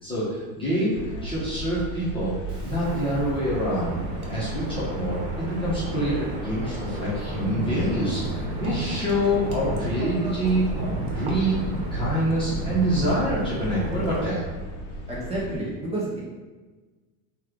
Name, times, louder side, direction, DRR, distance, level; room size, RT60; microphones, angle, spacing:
voice 1, 0.0-1.0 1.2-2.3 2.6-3.9 4.3-8.2 8.6-10.7 11.1-11.6 11.9-14.4, right 1 dB, 10° left, -10 dB, 0.8 m, -26 dB
sound 1, 0.9-15.6, equal, 45° left, 0.6 m, -35 dB
Wind, 2.5-14.3, right 1 dB, 80° right, 0.9 m, -33 dB
voice 2, 15.1-16.2, right 1 dB, 15° right, -7 dB, 0.5 m, -30 dB
3.1 x 2.4 x 3.5 m, 1.3 s
supercardioid pair, 145°, 44 cm